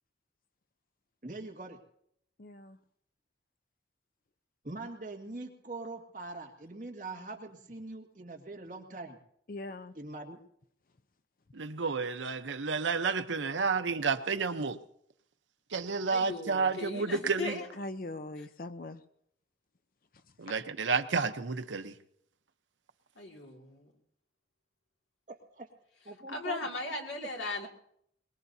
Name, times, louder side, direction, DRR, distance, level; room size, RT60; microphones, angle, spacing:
voice 1, 1.2-1.8 4.6-9.2 9.9-10.4 25.3-25.7 26.0-26.6 27.2-27.3 27.6-27.7, right 3 dB, 45° right, 1 dB, 2.0 m, -43 dB
voice 2, 2.4-2.8 9.5-9.9 17.8-19.0, left 2 dB, 50° left, 11 dB, 0.6 m, -41 dB
voice 3, 11.5-14.8 15.7-17.6 20.4-21.9, right 4 dB, 90° right, 10 dB, 0.8 m, -31 dB
voice 4, 16.1-17.7 23.2-23.9 26.3-27.7, left 3 dB, 80° left, 1 dB, 2.3 m, -38 dB
23.0 x 20.5 x 2.7 m, 0.71 s
head